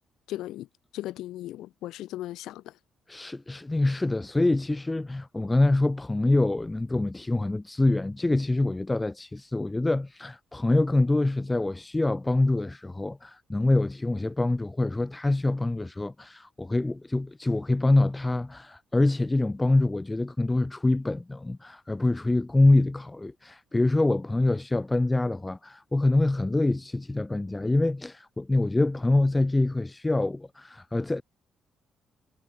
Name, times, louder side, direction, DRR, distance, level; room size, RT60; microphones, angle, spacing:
voice 1, 0.3-0.7 0.9-2.7, left 14 dB, 85° left, 4.2 m, -37 dB
voice 2, 3.1-31.2, left 2 dB, 15° left, 5.9 m, -25 dB
cardioid pair, 90°, 0 cm